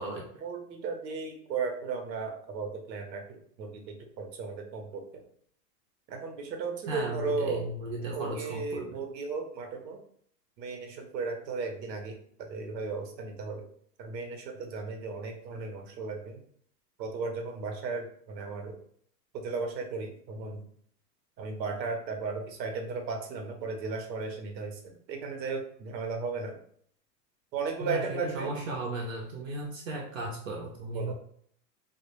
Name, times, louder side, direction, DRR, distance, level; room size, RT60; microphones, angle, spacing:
voice 1, 0.4-5.2 6.1-7.7 8.1-10.0 10.6-12.2 12.5-13.6 14.0-16.4 17.0-18.8 19.3-20.6 21.4-26.6 27.5-28.5 30.9-31.1, right 4 dB, 90° right, 4 dB, 0.8 m, -35 dB
voice 2, 6.9-8.9 27.8-31.1, right 2 dB, 55° right, -1 dB, 0.6 m, -35 dB
2.2 x 2.1 x 2.9 m, 0.62 s
supercardioid pair, 150°, 50 cm